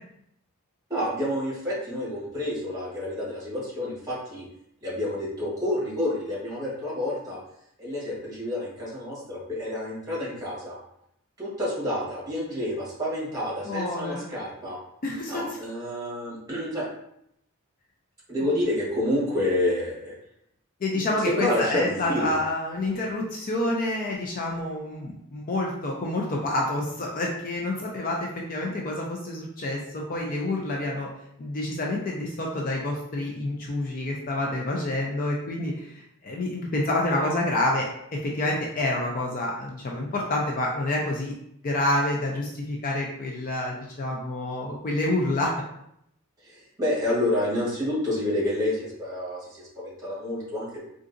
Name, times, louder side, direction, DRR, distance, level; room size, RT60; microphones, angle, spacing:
voice 1, 0.9-4.4 4.8-7.4 7.8-10.8 11.4-14.8 15.3-16.9 18.3-20.2 20.9-22.3 46.4-50.8, left 1 dB, 15° right, -7 dB, 1.3 m, -29 dB
voice 2, 13.7-14.2 15.0-15.6 20.8-31.1 31.4-41.3 41.6-45.5, left 1 dB, 40° left, -1 dB, 0.4 m, -28 dB
3.8 x 2.5 x 2.5 m, 0.75 s
head